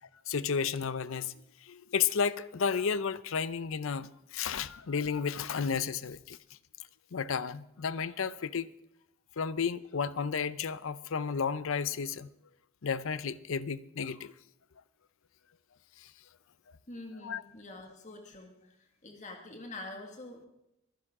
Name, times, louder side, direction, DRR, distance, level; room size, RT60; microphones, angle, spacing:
voice 1, 0.3-1.3 1.7-6.4 7.1-8.7 9.4-12.3 12.8-14.3 17.2-17.4, left 6 dB, 70° left, 0.6 m, -32 dB
voice 2, 16.9-18.6 19.0-20.5, left 2 dB, 35° left, 2.0 m, -45 dB
23.0 x 10.0 x 3.7 m
head